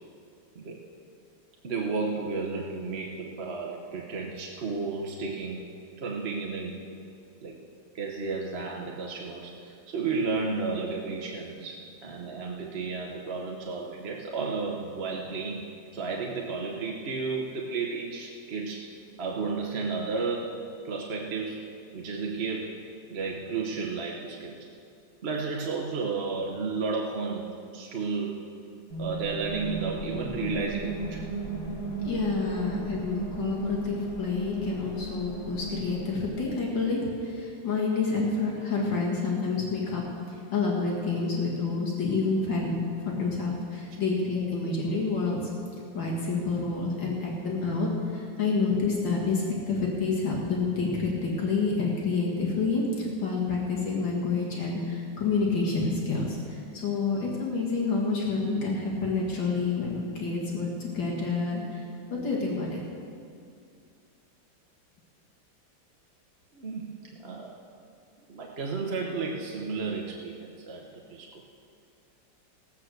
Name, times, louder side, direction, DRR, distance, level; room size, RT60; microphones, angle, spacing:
voice 1, 1.6-5.7 6.0-6.8 7.4-7.6 7.9-18.9 19.2-20.6 20.8-21.6 21.9-22.8 23.1-24.6 25.2-28.5 29.0-31.2 32.5-32.6 66.5-67.5 68.3-71.4, right 4 dB, 40° right, 0 dB, 1.0 m, -33 dB
sound 1, 28.9-36.7, right 2 dB, 90° left, 3.6 m, -35 dB
voice 2, 32.0-40.0 40.5-42.7 43.0-45.5 45.9-61.8 62.1-62.8, left 4 dB, 75° left, -3 dB, 2.7 m, -28 dB
16.0 x 8.5 x 6.6 m, 2.4 s
omnidirectional pair, 2.1 m